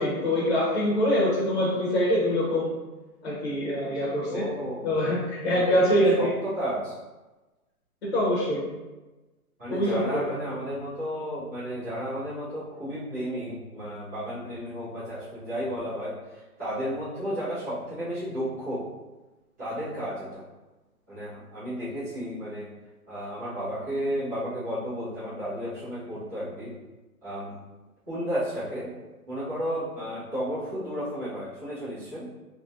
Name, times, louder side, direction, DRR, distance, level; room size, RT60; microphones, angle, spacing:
voice 1, 0.0-2.7 3.2-4.5 4.8-6.3 8.1-8.6 9.7-10.4, equal, 45° left, -7 dB, 1.1 m, -24 dB
voice 2, 4.3-4.9 5.6-5.9 6.2-7.0 9.6-18.8 19.6-20.4 21.1-22.7 23.1-26.7 27.2-27.6 28.1-28.9 29.3-32.3, equal, 10° right, -17 dB, 0.8 m, -33 dB
3.0 x 2.9 x 2.5 m, 1.1 s
hypercardioid pair, 175°, 46 cm